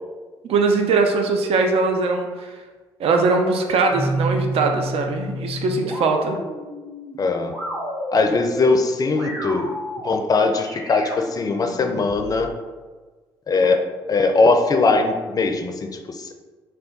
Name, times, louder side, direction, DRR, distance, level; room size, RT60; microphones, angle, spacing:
voice 1, 0.4-2.5 3.0-6.4, right 3 dB, 60° right, 4 dB, 0.5 m, -21 dB
sound 1, 3.9-12.5, right 1 dB, 35° right, 1.5 m, -31 dB
voice 2, 7.2-7.6 8.1-9.7 10.0-12.5 13.5-13.8 14.1-16.3, left 3 dB, 35° left, 6 dB, 0.4 m, -20 dB
3.3 x 2.2 x 3.9 m, 1.3 s
hypercardioid pair, 50°, 11 cm